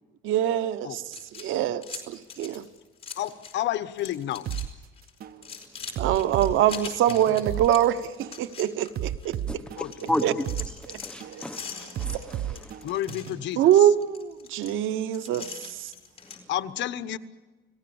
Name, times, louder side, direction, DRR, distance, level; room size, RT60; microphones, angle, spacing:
voice 1, 0.2-2.7 6.0-9.4 10.2-10.3 10.9-11.0 11.2-11.4 12.0-12.6 13.6-15.9, right 11 dB, 85° right, 1.0 m, -24 dB
sound 1, 1.1-3.6 3.9-4.7 5.0-9.4 9.8-16.4, left 6 dB, 30° left, 4.6 m, -42 dB
voice 2, 3.2-4.5 9.8-9.9 12.8-13.6 16.5-17.2, left 12 dB, 65° left, 1.1 m, -30 dB
sound 2, 4.5-4.7 5.2-5.4 6.0-7.7 8.2-8.4 9.0-10.7 11.2-11.4 12.0-13.5, right 11 dB, 50° right, 0.8 m, -33 dB
voice 3, 5.4-6.0 9.5-10.5 10.8-12.9 16.2-16.4, left 1 dB, 5° left, 0.9 m, -34 dB
30.0 x 18.5 x 7.1 m
cardioid pair, 150°, 20 cm